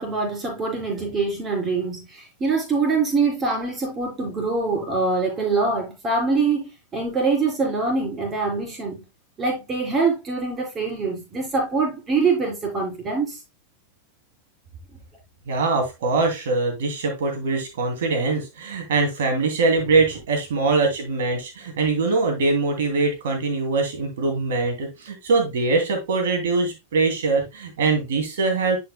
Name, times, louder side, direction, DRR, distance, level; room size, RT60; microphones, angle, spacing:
voice 1, 0.0-9.1 9.4-13.4, right 4 dB, 25° right, 3.7 m, -24 dB
voice 2, 15.5-28.8, right 3 dB, 60° right, 2.8 m, -22 dB
10.5 x 5.4 x 2.2 m
figure-of-eight pair, 90°, 0 cm